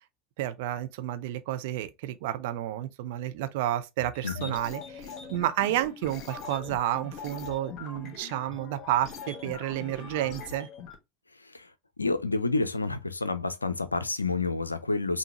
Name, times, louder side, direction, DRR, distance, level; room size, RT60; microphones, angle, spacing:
voice 1, 0.4-10.7, right 13 dB, 60° right, 0.6 m, -31 dB
sound 1, 4.1-10.9, left 5 dB, 45° left, 1.4 m, -42 dB
voice 2, 4.2-4.5 11.4-11.7 12.0-15.2, left 3 dB, 85° left, 0.4 m, -29 dB
5.6 x 2.7 x 2.9 m
figure-of-eight pair, 75°, 0 cm